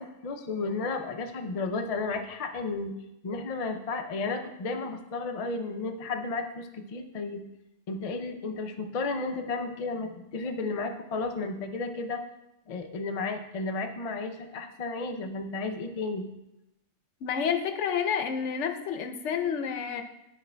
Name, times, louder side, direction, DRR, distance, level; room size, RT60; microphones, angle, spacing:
voice 1, 0.0-3.0 3.2-7.4 7.9-12.2 12.7-16.3, left 3 dB, 50° left, 5 dB, 0.4 m, -33 dB
voice 2, 17.2-20.0, left 7 dB, 75° left, 7 dB, 0.9 m, -29 dB
10.5 x 4.9 x 2.2 m, 0.90 s
omnidirectional pair, 1.3 m